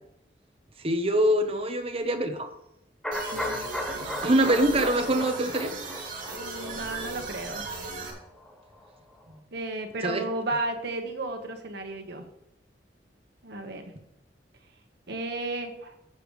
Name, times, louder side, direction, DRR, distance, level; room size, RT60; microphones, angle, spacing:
voice 1, 0.8-2.5 3.9-5.7 10.0-10.3, right 1 dB, 35° right, 7 dB, 1.0 m, -24 dB
sound 1, 3.0-8.9 9.2-9.3, left 1 dB, 5° left, 0.9 m, -37 dB
sound 2, 3.1-8.1, right 3 dB, 50° right, 2.5 m, -36 dB
voice 2, 6.3-7.6 9.5-12.2 13.4-13.8 15.1-15.9, right 2 dB, 65° right, 4 dB, 1.5 m, -33 dB
15.0 x 7.0 x 3.3 m, 0.81 s
head